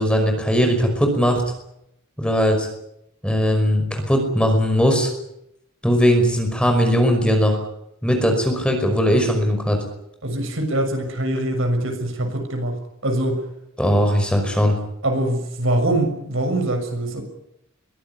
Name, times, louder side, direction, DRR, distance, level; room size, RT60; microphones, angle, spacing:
voice 1, 0.0-1.4 2.2-2.7 3.2-5.1 5.8-7.6 8.0-9.8 13.8-14.8, equal, 5° left, 4 dB, 5.4 m, -19 dB
voice 2, 10.2-12.7 13.0-13.5 15.0-17.2, right 1 dB, 65° right, 5 dB, 6.6 m, -23 dB
23.0 x 17.0 x 9.9 m, 0.79 s
head